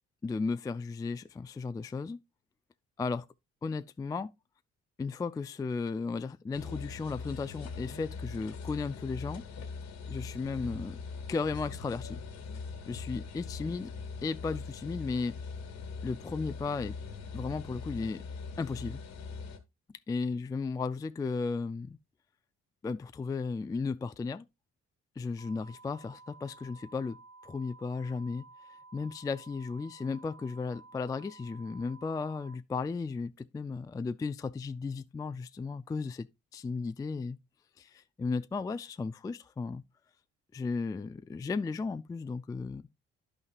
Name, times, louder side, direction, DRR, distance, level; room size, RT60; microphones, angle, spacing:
voice 1, 0.2-2.2 3.0-3.3 3.6-4.3 5.0-9.4 10.1-11.0 11.3-12.2 12.9-13.9 14.2-15.4 16.0-17.0 17.3-18.2 18.6-19.0 20.1-22.0 22.8-24.5 25.2-27.2 27.4-28.5 28.9-36.3 36.5-37.4 37.8-39.8 40.5-42.8, left 4 dB, 15° left, 0.3 m, -35 dB
sound 1, 6.5-19.6, left 4 dB, 65° left, 1.4 m, -42 dB
sound 2, 25.4-32.6, right 3 dB, 55° right, 0.9 m, -54 dB
10.5 x 5.6 x 2.4 m
hypercardioid pair, 55°, 31 cm